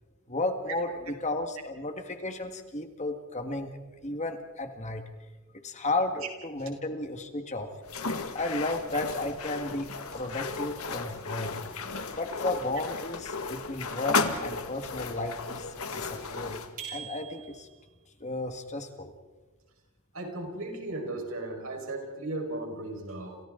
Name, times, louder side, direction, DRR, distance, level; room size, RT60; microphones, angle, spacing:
voice 1, 0.3-3.7 4.0-5.1 5.6-7.7 8.3-11.6 12.1-15.7 15.9-17.7 18.2-19.1, left 2 dB, 35° left, 6 dB, 1.8 m, -33 dB
sound 1, 7.9-16.7, left 4 dB, 85° left, 1.8 m, -34 dB
sound 2, 16.8-17.9, right 8 dB, 40° right, 7.6 m, -42 dB
voice 2, 20.1-23.4, right 2 dB, 65° right, 2 dB, 5.2 m, -36 dB
30.0 x 28.5 x 3.9 m, 1.3 s
head